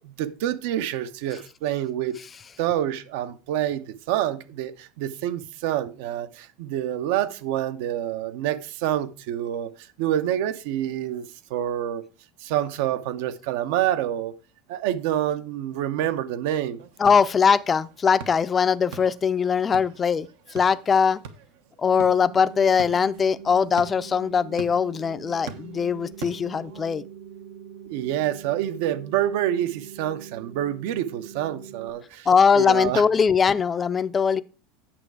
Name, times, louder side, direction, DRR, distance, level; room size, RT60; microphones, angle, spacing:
voice 1, 0.0-2.2 2.6-12.0 12.4-14.3 14.7-16.8 27.9-32.3 32.5-33.0, right 11 dB, 70° right, 0.8 m, -27 dB
sound 1, 16.8-26.9, right 6 dB, 85° right, 1.2 m, -44 dB
voice 2, 17.0-21.2 21.8-27.0 32.3-34.4, left 6 dB, 20° left, 0.4 m, -21 dB
sound 2, 21.9-31.9, right 8 dB, 40° right, 0.8 m, -43 dB
8.9 x 6.8 x 4.7 m
supercardioid pair, 150°, 0 cm